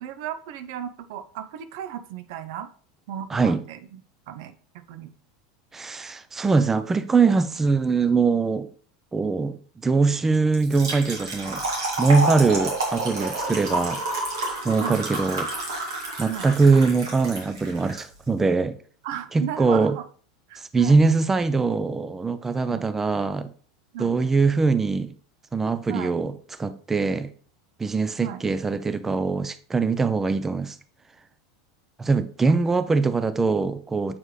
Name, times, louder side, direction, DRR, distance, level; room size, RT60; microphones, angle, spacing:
voice 1, 0.0-2.7 3.1-4.0 4.3-5.1 14.8-15.0 16.3-16.5 19.0-20.0 20.5-21.0 22.6-22.8 23.9-24.3 25.9-26.1 28.2-28.4 32.5-32.6, right 10 dB, 60° right, 0.6 m, -35 dB
voice 2, 3.3-3.6 5.7-8.7 9.1-11.6 12.0-14.0 14.6-15.5 16.2-18.8 19.3-20.0 20.6-23.5 24.0-25.1 25.5-26.3 26.6-27.3 27.8-30.8 32.0-34.2, right 4 dB, 15° right, 0.5 m, -22 dB
Trickle dribble / Fill (with liquid), 10.5-18.0, right 2 dB, 80° right, 2.2 m, -29 dB
7.3 x 4.6 x 3.2 m
hypercardioid pair, 85°, 2 cm